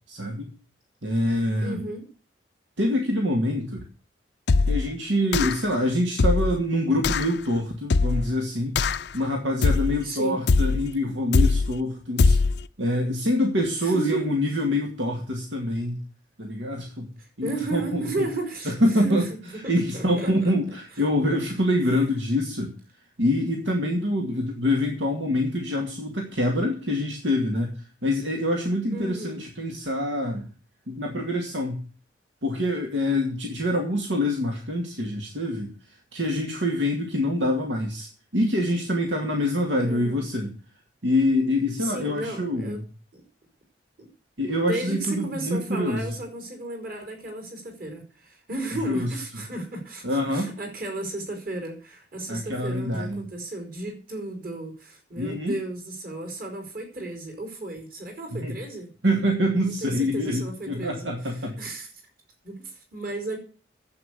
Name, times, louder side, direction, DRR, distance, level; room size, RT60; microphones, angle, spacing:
voice 1, 0.1-0.5 1.0-1.8 2.8-3.8 4.7-8.8 9.1-12.4 12.8-16.0 16.4-17.1 17.4-18.3 18.7-19.3 19.7-22.7 23.2-30.5 30.9-31.8 32.4-40.5 41.0-42.8 44.4-46.0 48.9-49.4 50.0-50.5 52.3-53.2 55.2-55.5 58.4-58.5 59.0-61.6, left 1 dB, 85° right, 2 dB, 2.3 m, -25 dB
voice 2, 1.6-2.1 10.0-10.4 13.8-14.3 17.2-19.4 19.6-20.5 21.3-21.4 21.9-22.0 28.9-29.4 39.8-40.2 41.8-42.8 43.1-43.2 44.0-44.1 44.6-58.9 59.6-61.9 62.4-63.4, right 2 dB, 50° right, 4 dB, 4.8 m, -34 dB
sound 1, 4.5-4.9 5.3-5.7 6.2-6.6 7.0-7.3 7.9-8.3 8.8-9.2 9.6-10.0 10.5-10.9 11.3-11.8 12.2-12.6, left 3 dB, 65° left, 0.5 m, -21 dB
11.0 x 8.6 x 8.2 m, 0.39 s
head